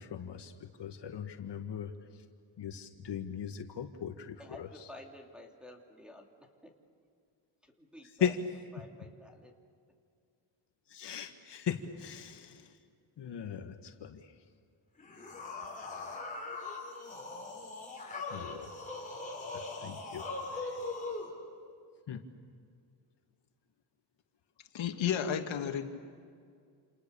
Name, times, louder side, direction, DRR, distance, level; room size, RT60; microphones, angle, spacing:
voice 1, 0.0-1.9 2.6-4.9 8.2-8.4 10.9-12.7 13.2-14.3 18.3-18.7 19.5-20.2 20.5-20.8 22.1-22.2, left 8 dB, 60° left, 6 dB, 1.7 m, -38 dB
voice 2, 4.4-6.7 7.6-8.4 8.7-9.5, left 1 dB, ahead, 2 dB, 2.7 m, -51 dB
sound 1, 15.0-21.3, left 3 dB, 15° left, 5.8 m, -41 dB
voice 3, 24.7-25.8, left 8 dB, 80° left, 5 dB, 2.1 m, -32 dB
28.5 x 28.5 x 7.0 m, 2.2 s
wide cardioid pair, 155°, 46 cm